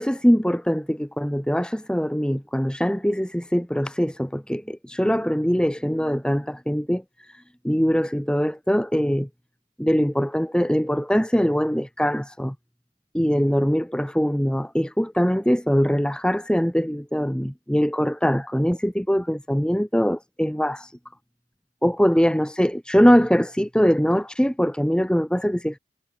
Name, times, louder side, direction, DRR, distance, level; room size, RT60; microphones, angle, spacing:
voice 1, 0.0-7.0 7.6-9.3 9.8-12.6 13.1-20.9 21.8-25.8, equal, 5° left, 1.8 m, -22 dB
head